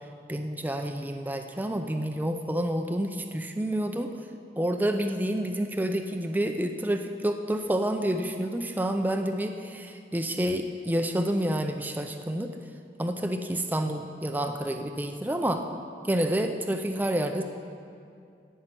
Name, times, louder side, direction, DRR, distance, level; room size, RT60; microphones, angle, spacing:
voice 1, 0.3-4.1 4.6-12.6 13.0-15.7 16.0-17.5, right 1 dB, 10° right, 5 dB, 0.5 m, -29 dB
16.5 x 5.6 x 6.0 m, 2.4 s
head